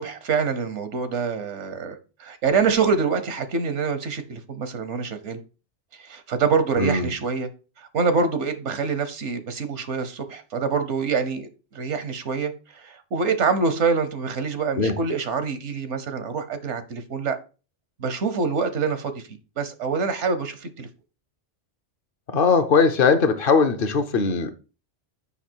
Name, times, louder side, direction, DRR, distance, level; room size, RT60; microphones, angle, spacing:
voice 1, 0.0-5.4 6.0-7.5 7.8-17.4 18.0-19.2 19.6-20.9, right 5 dB, 80° right, 1.3 m, -25 dB
voice 2, 6.8-7.1 14.7-15.0 22.3-24.5, left 5 dB, 55° left, 1.0 m, -20 dB
7.2 x 5.6 x 4.5 m
omnidirectional pair, 1.2 m